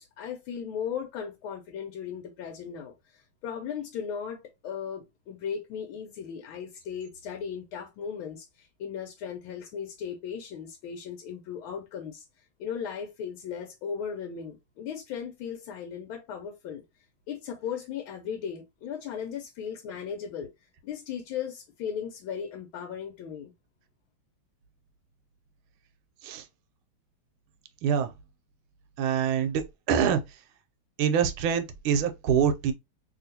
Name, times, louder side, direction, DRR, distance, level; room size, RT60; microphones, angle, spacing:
voice 1, 0.0-12.2 12.6-16.8 17.3-20.5 20.8-23.5, left 7 dB, 80° left, 1.4 m, -37 dB
voice 2, 27.8-28.1 29.0-30.4 31.0-32.7, right 8 dB, 80° right, 1.4 m, -25 dB
3.1 x 2.9 x 2.7 m
omnidirectional pair, 2.4 m